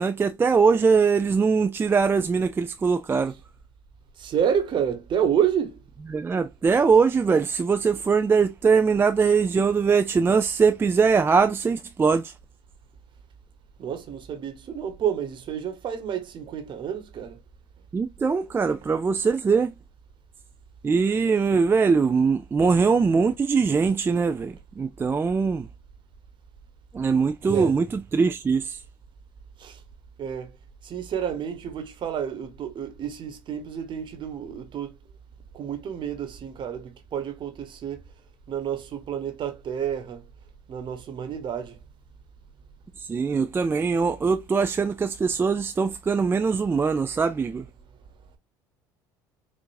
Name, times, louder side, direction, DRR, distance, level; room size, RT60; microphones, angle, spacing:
voice 1, 0.0-3.3 6.1-12.3 17.9-19.7 20.8-25.7 26.9-28.8 43.0-47.7, right 5 dB, 20° right, 0.3 m, -22 dB
voice 2, 4.2-5.8 13.8-17.4 27.5-27.7 29.6-29.8 30.2-30.5 30.8-34.9 35.5-38.0 38.5-40.2 40.7-41.8, right 8 dB, 50° right, 1.1 m, -29 dB
4.5 x 2.5 x 2.5 m
hypercardioid pair, 75°, 11 cm